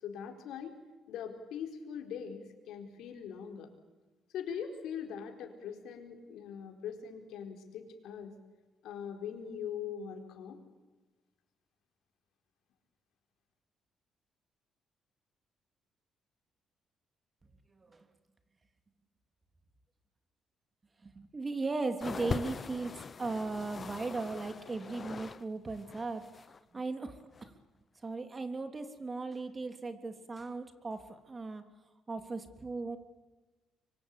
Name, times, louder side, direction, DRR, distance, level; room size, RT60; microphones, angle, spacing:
voice 1, 0.0-0.7 1.1-3.7 4.3-8.3 8.8-10.6, left 7 dB, 85° left, 4 dB, 4.5 m, -41 dB
voice 2, 21.0-22.9 23.2-26.2 26.7-27.5 28.0-31.6 32.1-33.0, right 3 dB, 30° right, 8 dB, 3.3 m, -37 dB
sound 1, 22.0-25.4 25.7-26.6 27.3-27.4, left 5 dB, 40° left, 0.8 m, -41 dB
25.5 x 24.0 x 8.6 m, 1.2 s
cardioid pair, 90°, 0 cm